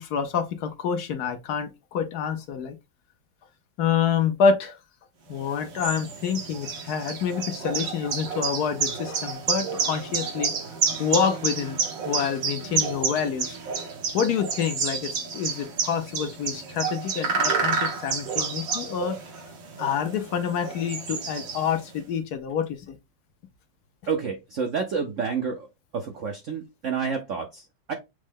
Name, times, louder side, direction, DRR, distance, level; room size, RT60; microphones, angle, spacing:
voice 1, 0.0-2.8 3.8-4.8 5.3-10.5 11.0-11.8 12.0-13.6 14.1-19.2 19.8-23.0, left 7 dB, 70° left, 1.0 m, -27 dB
sound 1, 5.4-21.9, right 5 dB, 80° right, 1.8 m, -30 dB
voice 2, 24.1-25.7 25.9-27.9, right 6 dB, 65° right, 0.8 m, -29 dB
6.2 x 2.1 x 3.5 m
omnidirectional pair, 2.0 m